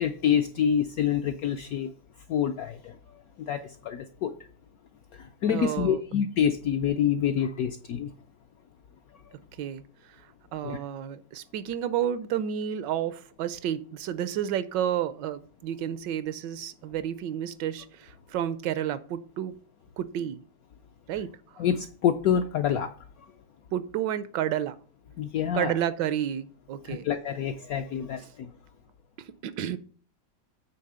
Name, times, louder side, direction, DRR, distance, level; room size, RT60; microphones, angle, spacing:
voice 1, 0.0-1.9 2.3-4.3 5.1-8.1 9.1-9.3 10.6-10.8 21.6-22.9 25.2-25.7 26.8-28.5, left 8 dB, 75° left, 6 dB, 0.8 m, -27 dB
voice 2, 5.5-6.0 9.6-9.8 10.5-19.5 20.0-20.4 21.1-21.6 23.7-24.8 25.5-27.1 28.2-28.3 29.2-29.8, right 10 dB, 75° right, 15 dB, 1.2 m, -31 dB
8.6 x 3.4 x 6.6 m, 0.43 s
omnidirectional pair, 2.0 m